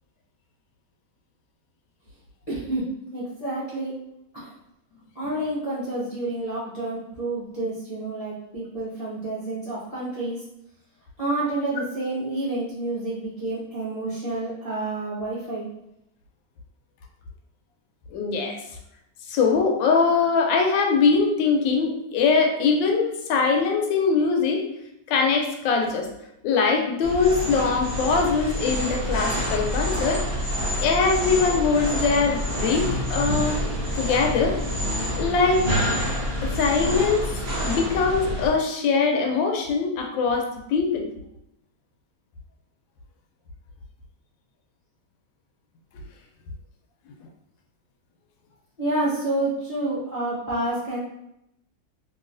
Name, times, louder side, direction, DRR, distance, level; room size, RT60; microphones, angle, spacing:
voice 1, 2.5-4.0 4.3-4.5 5.1-10.4 11.2-15.7 48.8-51.0, right 2 dB, 45° left, -10 dB, 0.5 m, -29 dB
voice 2, 18.1-18.6 19.3-24.6 25.1-26.1 26.4-30.3 30.8-33.6 34.0-34.6 35.2-35.7 36.4-41.1, left 4 dB, 90° left, 2 dB, 1.3 m, -22 dB
sound 1, 27.0-38.5, equal, 50° right, 0.5 m, -27 dB
3.0 x 2.9 x 2.4 m, 0.81 s
omnidirectional pair, 2.0 m